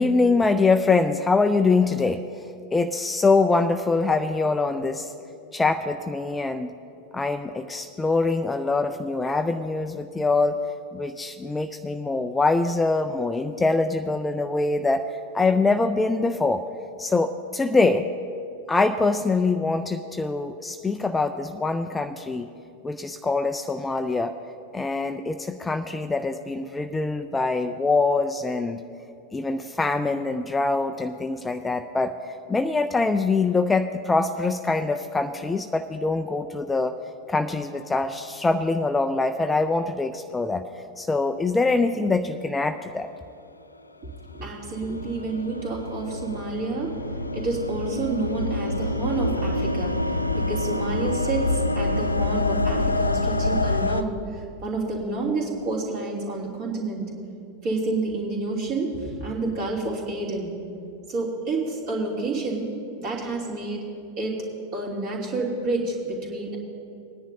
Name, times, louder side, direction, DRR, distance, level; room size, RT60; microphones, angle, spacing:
voice 1, 0.0-2.2 2.7-5.1 5.5-6.7 7.1-10.6 10.9-15.0 15.3-16.6 17.0-18.1 18.7-22.5 22.8-24.3 24.7-28.8 29.3-36.9 37.3-40.7 41.0-43.1, left 3 dB, 10° left, 8 dB, 0.4 m, -24 dB
voice 2, 44.0-47.0 47.3-57.1 57.6-60.5 61.1-62.7 63.0-63.8 64.2-64.4 64.7-66.6, right 3 dB, 40° right, -3 dB, 2.9 m, -29 dB
breath comp piece, 44.3-54.0, left 2 dB, 85° left, 0.4 m, -26 dB
20.5 x 10.0 x 2.7 m, 2.6 s
figure-of-eight pair, 90°, 0 cm